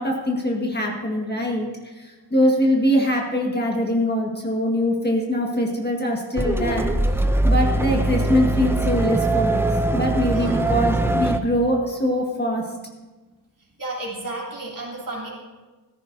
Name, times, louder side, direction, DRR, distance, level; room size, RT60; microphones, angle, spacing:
voice 1, 0.0-6.9 7.4-12.6, equal, 25° left, -1 dB, 1.5 m, -23 dB
sound 1, 6.4-11.4, right 1 dB, 5° right, 0.4 m, -22 dB
voice 2, 10.3-10.7 13.8-15.3, right 2 dB, 50° right, -4 dB, 3.2 m, -32 dB
14.5 x 14.0 x 2.7 m, 1.2 s
wide cardioid pair, 130°, 41 cm